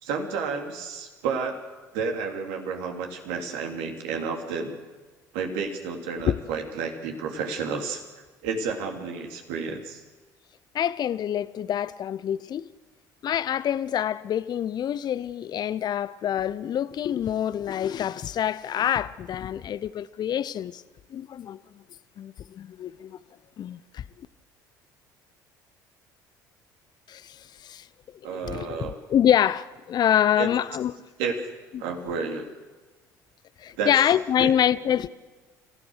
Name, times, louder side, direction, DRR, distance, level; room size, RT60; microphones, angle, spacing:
voice 1, 0.0-1.6 1.9-4.7 5.3-8.0 8.4-10.0 28.2-29.0 30.4-30.5 31.2-31.5 31.8-32.5 33.8-33.9 34.4-34.6, right 5 dB, 65° right, 3.3 m, -31 dB
voice 2, 10.7-12.7 13.2-20.8 21.1-21.6 22.2-23.2 23.6-24.0 27.1-27.9 28.5-30.9 33.6-35.1, left 10 dB, 45° left, 0.8 m, -26 dB
30.0 x 16.0 x 6.5 m
figure-of-eight pair, 60°, 10 cm